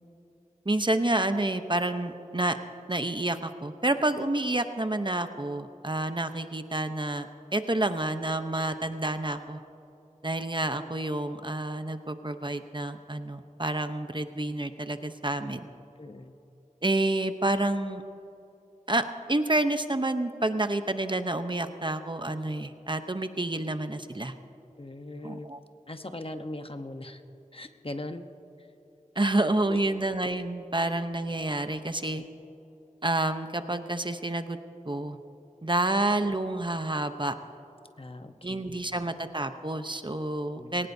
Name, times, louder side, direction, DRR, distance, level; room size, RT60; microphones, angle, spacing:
voice 1, 0.7-2.6 2.9-9.6 10.2-15.7 16.8-18.0 18.9-24.3 25.2-25.6 29.2-32.2 33.0-34.6 34.8-35.2 35.6-37.3 38.4-40.9, right 2 dB, 35° right, 8 dB, 0.8 m, -29 dB
voice 2, 16.0-16.3 24.8-25.5 25.9-27.2 27.5-28.2 28.6-28.7 29.7-30.0 32.2-32.3 38.0-38.7 40.5-40.8, left 1 dB, 45° left, 7 dB, 1.0 m, -40 dB
21.0 x 18.5 x 2.7 m, 2.9 s
wide cardioid pair, 40°, 14 cm